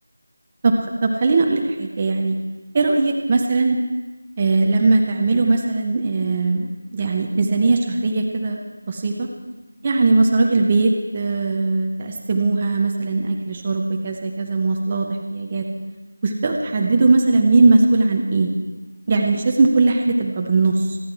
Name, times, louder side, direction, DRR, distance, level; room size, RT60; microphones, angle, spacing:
voice 1, 0.6-2.4 2.7-3.8 4.4-6.7 6.9-8.6 8.9-9.3 9.8-15.6 16.2-18.5 19.1-21.0, right 3 dB, 15° right, 2 dB, 0.6 m, -19 dB
25.5 x 9.4 x 4.5 m, 1.2 s
figure-of-eight pair, 180°, 0 cm